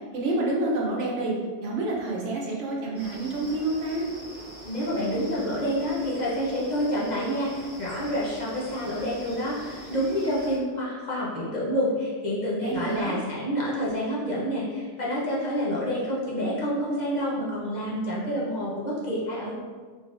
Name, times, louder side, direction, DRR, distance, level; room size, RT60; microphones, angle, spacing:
voice 1, 0.0-1.3 1.6-4.1 12.6-13.2, right 2 dB, 80° right, -3 dB, 1.1 m, -28 dB
sound 1, 2.9-10.6, equal, 10° right, 1.3 m, -43 dB
voice 2, 4.6-19.5, equal, 40° left, -6 dB, 0.8 m, -28 dB
3.8 x 3.6 x 2.5 m, 1.5 s
omnidirectional pair, 1.2 m